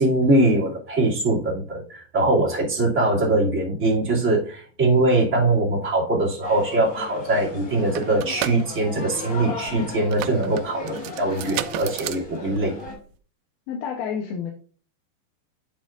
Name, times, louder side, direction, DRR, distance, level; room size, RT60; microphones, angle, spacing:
voice 1, 0.0-12.7, right 2 dB, 20° right, -5 dB, 2.4 m, -22 dB
sound 1, 6.4-12.9, left 4 dB, 45° left, 3.4 m, -36 dB
sound 2, 7.2-7.3 7.5-13.2, right 13 dB, 85° right, 2.1 m, -34 dB
voice 2, 13.7-14.5, left 7 dB, 75° left, 2 dB, 2.7 m, -29 dB
8.7 x 7.4 x 2.6 m, 0.42 s
omnidirectional pair, 4.8 m